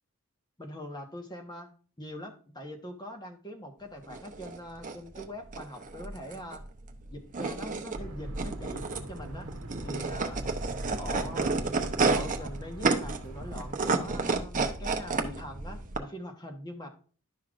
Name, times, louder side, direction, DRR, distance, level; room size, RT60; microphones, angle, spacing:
voice 1, 0.6-1.7 2.0-6.6 7.1-9.5 9.8-10.5 10.9-11.5 12.0-16.9, equal, 20° left, 4 dB, 1.2 m, -42 dB
sound 1, 4.0-16.0, right 3 dB, 35° right, 0.8 m, -31 dB
sound 2, 7.9-13.7, right 1 dB, 80° right, 1.1 m, -41 dB
11.0 x 5.7 x 2.5 m, 0.40 s
head